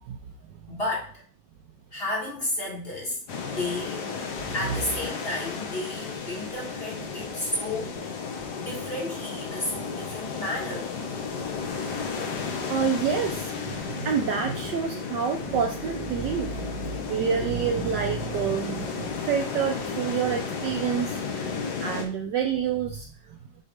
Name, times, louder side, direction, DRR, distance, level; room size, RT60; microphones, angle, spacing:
voice 1, 0.7-1.2 1.9-3.2 3.5-4.1 4.5-8.0 8.6-10.9 17.2-17.5 22.0-22.3, left 1 dB, 30° left, -4 dB, 1.9 m, -32 dB
sound 1, 3.3-22.0, left 5 dB, 60° left, 1.4 m, -33 dB
voice 2, 12.7-13.4 13.7-21.5 21.8-23.1, right 7 dB, 70° right, 4 dB, 1.1 m, -28 dB
6.3 x 3.1 x 5.0 m, 0.40 s
omnidirectional pair, 2.3 m